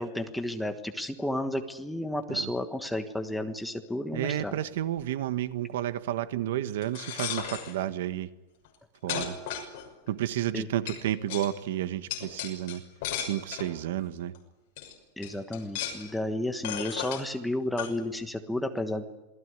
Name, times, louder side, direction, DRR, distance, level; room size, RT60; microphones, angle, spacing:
voice 1, 0.0-4.6 10.5-10.7 15.2-19.0, left 1 dB, ahead, 6 dB, 1.3 m, -32 dB
voice 2, 4.1-8.3 9.0-9.4 10.1-12.8 13.2-14.3, right 12 dB, 85° right, 12 dB, 1.4 m, -31 dB
sound 1, 6.8-7.7 8.6-8.7 9.1-10.1 10.9-11.0 11.3-11.5 12.1-13.7 14.3-14.4 14.8-14.9 15.2-16.1 16.6-17.2 17.8-17.9, left 10 dB, 50° left, 6.2 m, -35 dB
27.5 x 19.0 x 9.5 m, 1.0 s
supercardioid pair, 180°, 0 cm